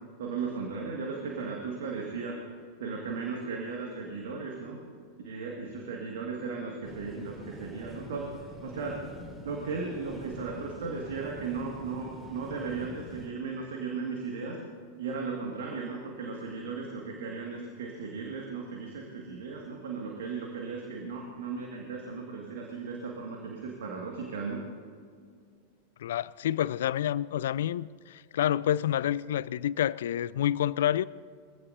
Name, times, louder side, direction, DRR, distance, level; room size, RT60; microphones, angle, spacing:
voice 1, 0.2-2.4 2.8-4.8 5.2-9.0 9.4-14.6 15.0-24.6, right 4 dB, 60° right, 2.1 m, -36 dB
sound 1, 6.8-13.3, left 1 dB, 5° right, 3.8 m, -45 dB
voice 2, 26.0-31.0, left 11 dB, 60° left, 0.3 m, -28 dB
23.0 x 16.0 x 2.8 m
figure-of-eight pair, 90°, 0 cm